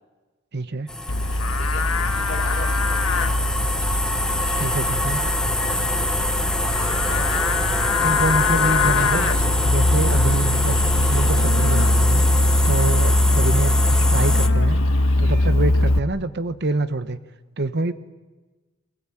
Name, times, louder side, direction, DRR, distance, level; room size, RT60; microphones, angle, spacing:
voice 1, 0.5-0.9 4.6-5.2 8.0-9.3 9.6-12.3 12.6-14.8 15.2-17.2 17.6-17.9, right 2 dB, 55° right, 12 dB, 1.0 m, -26 dB
sound 1, 0.9-14.5, left 1 dB, 5° left, 0.9 m, -26 dB
Livestock farm animals working animals, 1.1-16.0, left 2 dB, 80° left, 1.3 m, -21 dB
voice 2, 1.6-3.5 6.6-7.4 8.4-9.5, left 2 dB, 40° left, 1 dB, 6.1 m, -38 dB
sound 2, 4.2-5.4 8.0-8.4 9.0-11.1 12.0-15.5, right 3 dB, 35° right, 3.8 m, -45 dB
24.0 x 21.0 x 8.9 m, 1.2 s
head